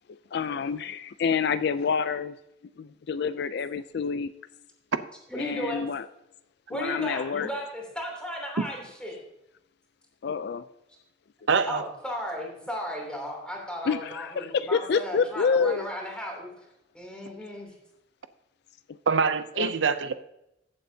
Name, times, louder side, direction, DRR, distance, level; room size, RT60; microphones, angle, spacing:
voice 1, 0.3-2.4 2.8-4.3 5.4-6.1 6.7-7.5 10.2-10.6 13.8-15.9 18.9-19.0 19.6-19.7, left 5 dB, 60° left, 13 dB, 0.4 m, -28 dB
voice 2, 5.3-5.9 6.7-9.2 11.7-16.5 16.9-17.7, equal, 5° left, -1 dB, 3.0 m, -35 dB
voice 3, 11.5-11.8 19.1-20.2, right 5 dB, 90° right, 12 dB, 0.6 m, -24 dB
15.0 x 7.7 x 2.8 m, 0.85 s
head